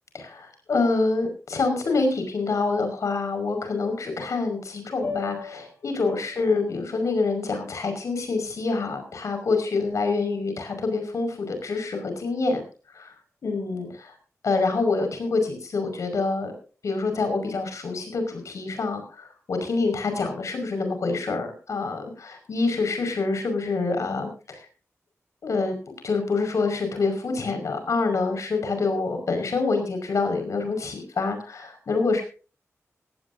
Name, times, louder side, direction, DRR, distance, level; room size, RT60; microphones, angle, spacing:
voice 1, 0.1-12.6 12.9-13.1 13.4-14.1 14.4-16.6 16.8-24.7 25.4-25.8 26.0-32.2, left 3 dB, 75° left, 6 dB, 5.4 m, -26 dB
sound 1, 5.0-9.3, left 5 dB, 55° left, 6.0 m, -41 dB
18.0 x 17.0 x 2.7 m, 0.36 s
wide cardioid pair, 85°, 5 cm